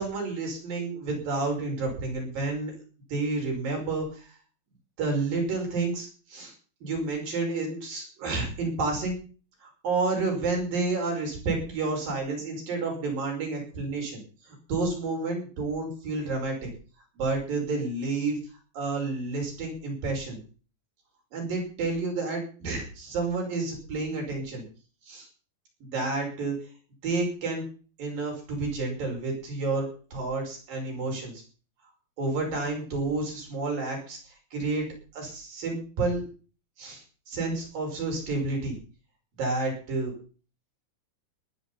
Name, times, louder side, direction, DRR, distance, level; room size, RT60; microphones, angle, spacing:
voice 1, 0.0-2.7 3.1-4.3 5.0-6.5 6.8-9.1 9.6-16.7 17.2-18.4 18.7-20.4 21.3-24.6 25.1-25.3 25.8-26.6 27.0-27.6 28.0-31.4 32.2-34.9 35.1-36.2 36.8-38.8 39.4-40.1, right 3 dB, 65° right, 1 dB, 7.2 m, -30 dB
19.5 x 10.0 x 5.6 m, 0.38 s
omnidirectional pair, 4.3 m